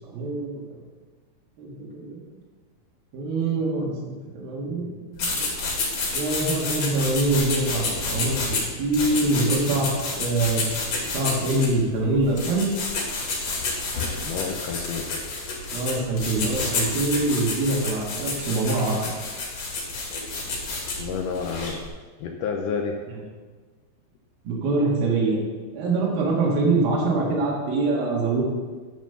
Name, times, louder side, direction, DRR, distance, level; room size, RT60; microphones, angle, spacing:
voice 1, 0.1-0.6 1.6-2.2 3.1-5.5 6.1-10.6 11.1-12.7 15.7-19.0 24.5-25.4 25.7-28.4, right 2 dB, 70° right, -4 dB, 3.5 m, -24 dB
sound 1, 5.2-21.9, left 3 dB, 55° left, 3.9 m, -29 dB
voice 2, 14.2-15.2 21.0-21.8 22.2-23.0, left 6 dB, 80° left, 2 dB, 1.9 m, -29 dB
10.5 x 5.0 x 6.8 m, 1.4 s
omnidirectional pair, 4.6 m